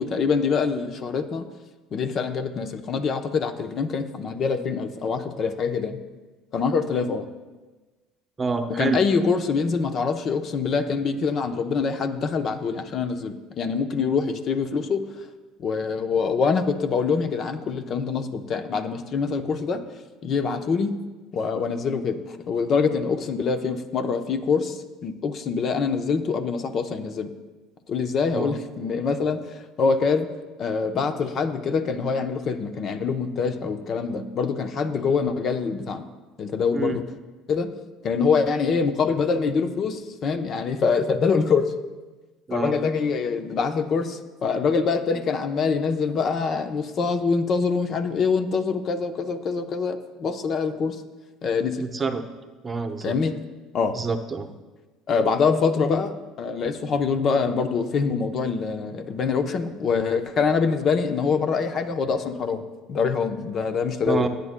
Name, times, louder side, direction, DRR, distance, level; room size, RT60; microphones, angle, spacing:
voice 1, 0.0-1.5 1.9-6.0 6.5-7.3 8.8-15.1 15.6-19.8 20.2-21.0 21.3-22.2 22.5-27.3 27.9-30.3 30.6-36.0 36.4-37.0 37.5-37.7 38.0-41.7 42.5-51.0 51.4-51.8 53.0-53.4 53.7-54.0 55.1-64.3, left 5 dB, 50° left, 8 dB, 0.7 m, -25 dB
voice 2, 8.4-9.0 28.3-28.5 36.7-37.0 42.5-42.8 51.8-52.2 52.6-53.2 53.9-54.5 64.0-64.3, right 4 dB, 25° right, 7 dB, 0.8 m, -27 dB
17.0 x 8.3 x 2.2 m, 1.2 s
supercardioid pair, 85°, 0 cm